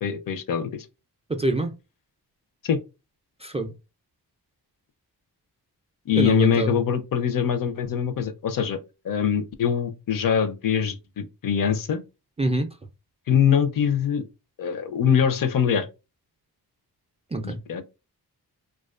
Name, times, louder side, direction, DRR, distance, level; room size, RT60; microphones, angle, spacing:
voice 1, 0.0-0.9 2.6-2.8 6.1-8.8 9.0-12.0 13.3-14.2 14.6-15.9 17.4-17.8, left 8 dB, 55° left, 0.5 m, -23 dB
voice 2, 1.3-1.7 3.4-3.7 6.1-6.8 12.4-12.7 17.3-17.6, right 2 dB, 15° right, 0.3 m, -25 dB
2.3 x 2.3 x 2.4 m
cardioid pair, 60°, 39 cm